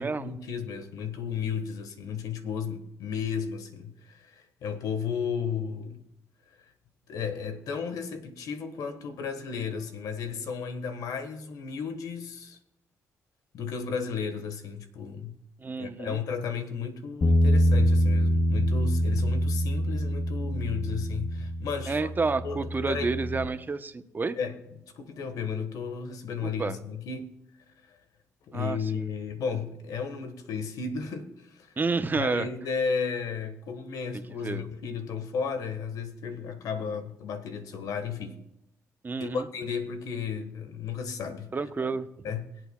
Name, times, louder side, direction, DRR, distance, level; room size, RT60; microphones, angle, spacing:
voice 1, 0.0-6.0 7.1-12.6 13.5-15.4 15.8-22.1 22.4-23.1 24.4-24.6 25.0-27.3 27.9-28.0 28.5-31.7 32.2-38.4 39.2-41.5 42.2-42.5, left 6 dB, 80° left, 1.5 m, -34 dB
voice 2, 15.6-16.2 21.9-24.4 26.4-26.8 28.5-29.0 31.8-32.5 34.1-34.6 39.0-39.4 41.5-42.1, right 4 dB, 30° right, 0.9 m, -30 dB
Bass guitar, 17.2-23.5, equal, 55° left, 2.3 m, -25 dB
22.5 x 8.0 x 2.4 m
cardioid pair, 70°, 6 cm